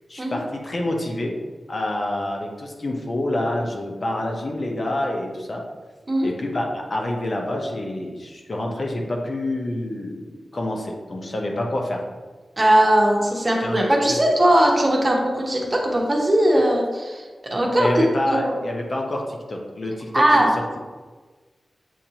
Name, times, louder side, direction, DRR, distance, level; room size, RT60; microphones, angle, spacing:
voice 1, 0.1-1.4 1.7-5.6 6.2-12.0 13.6-13.8 14.1-14.2 17.8-20.5, left 1 dB, 50° left, 0 dB, 0.7 m, -27 dB
voice 2, 12.6-18.5 20.1-20.5, right 1 dB, 30° right, -1 dB, 0.9 m, -19 dB
7.2 x 2.6 x 2.9 m, 1.3 s
wide cardioid pair, 90°, 0 cm